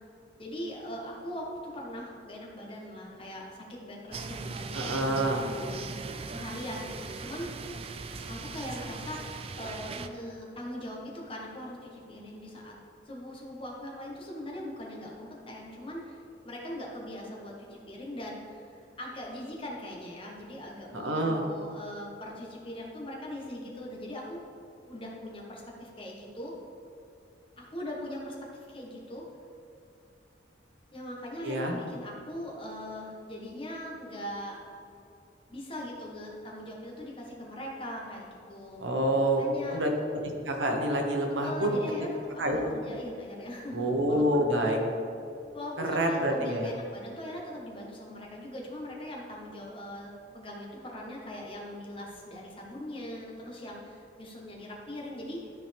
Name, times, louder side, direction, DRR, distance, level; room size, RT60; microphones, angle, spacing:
voice 1, 0.4-7.5 8.3-12.8 13.0-16.2 16.4-24.4 24.9-26.5 27.6-28.4 28.7-29.2 30.9-34.6 35.5-38.9 39.4-39.8 41.4-44.4 45.5-55.5, left 1 dB, 30° left, -2 dB, 1.3 m, -40 dB
sound 1, 4.1-10.1, right 4 dB, 30° right, 0.3 m, -39 dB
voice 2, 4.7-5.4 20.9-21.4 31.4-31.8 38.8-39.4 39.7-39.9 40.4-41.8 42.4-42.6 43.7-44.8 45.8-46.7, right 1 dB, 85° right, 2 dB, 1.1 m, -27 dB
12.5 x 4.5 x 3.5 m, 2.5 s
head